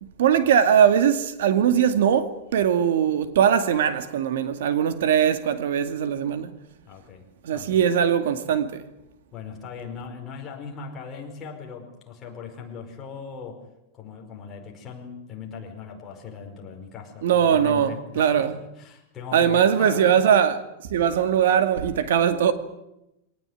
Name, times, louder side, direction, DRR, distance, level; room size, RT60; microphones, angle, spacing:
voice 1, 0.0-6.5 7.4-8.8 17.2-18.5 19.3-20.6 20.9-22.5, right 8 dB, 85° right, 2.3 m, -21 dB
voice 2, 6.9-7.8 9.3-13.6 13.9-20.2, left 6 dB, 20° left, 5.0 m, -39 dB
25.0 x 18.5 x 9.4 m
supercardioid pair, 170°, 0 cm